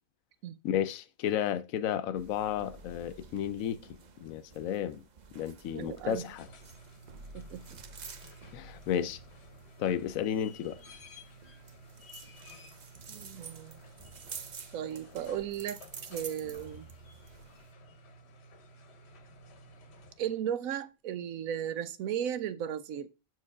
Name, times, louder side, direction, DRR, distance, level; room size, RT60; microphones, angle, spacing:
voice 1, 0.6-3.9 4.2-5.0 5.3-6.5 8.5-9.2 9.8-10.8, left 10 dB, 80° left, 1.0 m, -32 dB
sound 1, 2.1-17.7, right 5 dB, 45° right, 0.6 m, -50 dB
voice 2, 5.7-6.2 7.3-7.8 13.1-13.8 14.7-16.9 20.2-23.1, right 9 dB, 85° right, 1.1 m, -36 dB
sound 2, 6.1-20.5 22.3-22.4, equal, 55° left, 1.0 m, -54 dB
6.2 x 4.6 x 4.8 m
omnidirectional pair, 1.4 m